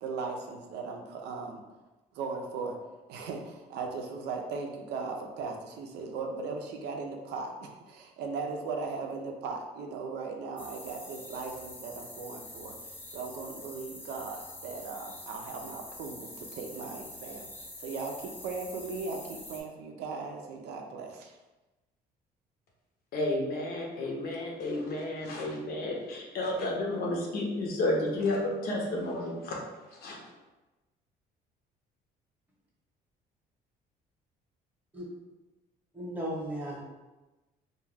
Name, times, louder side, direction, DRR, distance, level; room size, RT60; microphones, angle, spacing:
voice 1, 0.0-1.6 2.1-2.8 3.1-12.7 13.1-17.5 17.8-21.4, right 4 dB, 80° right, 3 dB, 0.4 m, -38 dB
sound 1, 10.6-19.6, left 1 dB, 10° left, 0.5 m, -46 dB
voice 2, 23.1-29.6 30.0-30.2, left 1 dB, 65° left, -1 dB, 0.7 m, -31 dB
voice 3, 35.9-36.8, equal, 10° right, -4 dB, 0.8 m, -35 dB
2.2 x 2.2 x 3.2 m, 1.1 s
cardioid pair, 110°, 17 cm